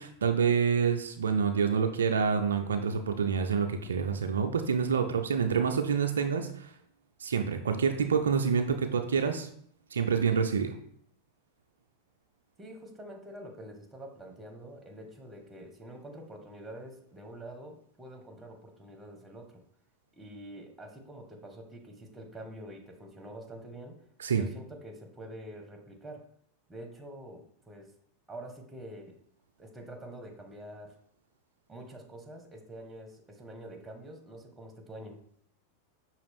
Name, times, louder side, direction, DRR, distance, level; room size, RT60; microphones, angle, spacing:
voice 1, 0.0-6.7 7.2-9.5 9.9-10.8 24.2-24.4, right 6 dB, 80° right, 6 dB, 0.4 m, -27 dB
voice 2, 12.6-19.6 20.2-24.0 24.3-26.3 26.7-27.9 28.3-29.2 29.6-31.0 31.7-35.2, right 1 dB, 15° right, 4 dB, 1.0 m, -46 dB
5.8 x 2.4 x 3.5 m, 0.63 s
hypercardioid pair, 95°, 0 cm